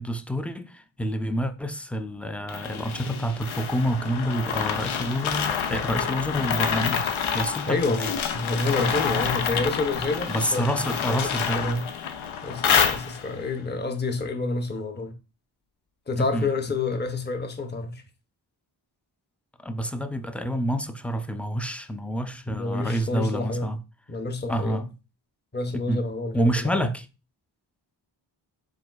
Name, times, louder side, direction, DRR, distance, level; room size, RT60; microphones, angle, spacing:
voice 1, 0.0-8.1 10.3-11.8 16.2-16.5 19.6-23.8 24.5-24.9 25.7-26.0 26.3-27.1, equal, 5° left, 0.3 m, -28 dB
sound 1, 2.5-13.5, left 7 dB, 85° left, 0.6 m, -28 dB
voice 2, 7.7-8.1 8.3-10.8 11.1-11.9 12.4-15.1 16.1-18.0 22.5-23.7 24.1-24.8 25.5-26.8, left 3 dB, 20° left, 0.8 m, -28 dB
5.0 x 3.7 x 2.3 m
cardioid pair, 55°, 47 cm